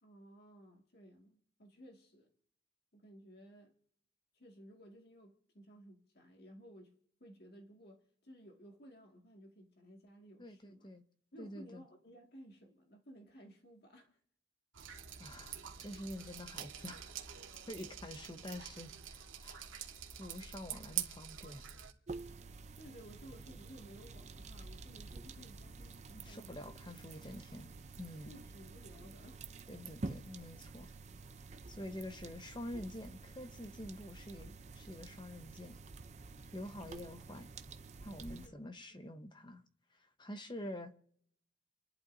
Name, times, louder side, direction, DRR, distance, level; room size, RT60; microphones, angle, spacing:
voice 1, 0.0-2.3 2.9-3.7 4.3-6.9 7.2-10.9 11.3-14.2 22.8-26.7 27.0-27.2 28.3-29.4 36.8-36.9 38.4-39.3, equal, 50° left, 2.1 m, -57 dB
voice 2, 10.4-11.0 11.4-11.8 15.2-17.2 17.7-19.7 20.2-21.7 26.1-28.4 29.7-30.9 31.7-35.8 36.5-37.5 38.0-39.6 39.9-40.9, left 1 dB, 25° left, 1.0 m, -47 dB
Drip, 14.7-21.9, right 9 dB, 85° right, 1.7 m, -46 dB
sound 1, 22.1-38.5, right 3 dB, 35° right, 0.6 m, -49 dB
30.0 x 11.5 x 2.7 m
head